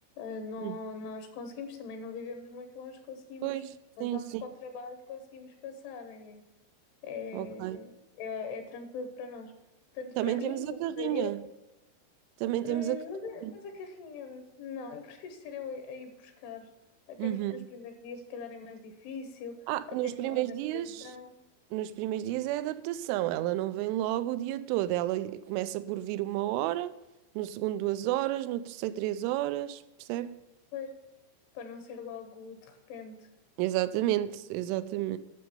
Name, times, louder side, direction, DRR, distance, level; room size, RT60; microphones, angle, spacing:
voice 1, 0.2-3.6 4.0-6.4 7.0-9.5 9.9-11.4 12.6-16.7 17.1-19.6 19.9-21.3 30.7-30.9 31.6-33.3, left 5 dB, 75° left, 3.6 m, -41 dB
voice 2, 3.4-3.7 4.0-4.4 7.3-7.8 10.2-11.4 12.4-13.0 13.4-13.5 17.2-17.7 19.7-21.1 21.7-26.9 27.4-30.4 33.6-35.2, right 14 dB, 85° right, 3.0 m, -31 dB
11.0 x 6.7 x 6.8 m
omnidirectional pair, 5.7 m